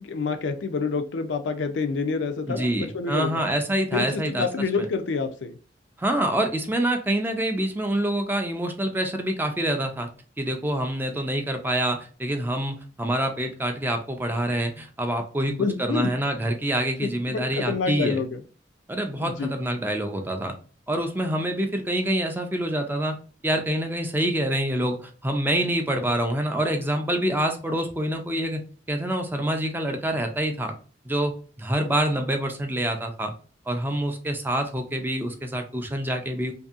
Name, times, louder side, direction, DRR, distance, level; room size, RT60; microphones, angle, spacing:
voice 1, 0.0-3.5 3.9-5.6 15.5-16.1 17.0-18.3 19.2-19.5, left 4 dB, 85° left, 7 dB, 0.4 m, -28 dB
voice 2, 2.5-4.5 4.8-4.9 6.0-10.1 10.4-15.5 15.8-18.2 18.9-20.6 20.9-23.2 23.4-28.6 28.9-30.7 31.0-31.3 31.6-33.3 33.7-36.5, right 1 dB, 10° right, 5 dB, 0.4 m, -26 dB
2.7 x 2.6 x 2.4 m, 0.38 s
head